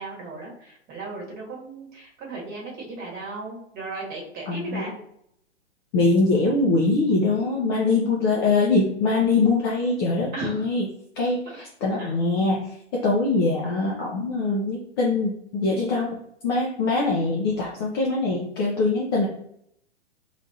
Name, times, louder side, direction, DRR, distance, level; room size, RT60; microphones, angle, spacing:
voice 1, 0.0-5.0 10.3-10.7 12.0-12.1, right 3 dB, 25° right, -2 dB, 1.2 m, -36 dB
voice 2, 4.5-4.8 5.9-10.9 11.2-12.7 12.9-16.1 16.4-19.3, left 3 dB, 25° left, -3 dB, 0.4 m, -23 dB
3.2 x 2.4 x 2.7 m, 0.71 s
hypercardioid pair, 125°, 34 cm